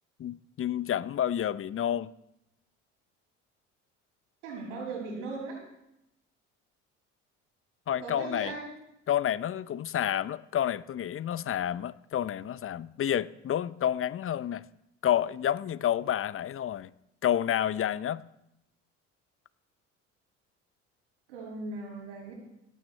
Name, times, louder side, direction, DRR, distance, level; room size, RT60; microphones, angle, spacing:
voice 1, 0.2-2.1 7.9-8.5 9.1-14.6 15.0-16.9 17.2-18.2, left 10 dB, 35° left, 0.7 m, -29 dB
voice 2, 4.4-5.6 8.0-8.8 21.3-22.3, right 3 dB, 80° right, 7.1 m, -38 dB
18.0 x 18.0 x 3.3 m
hypercardioid pair, 60°, 37 cm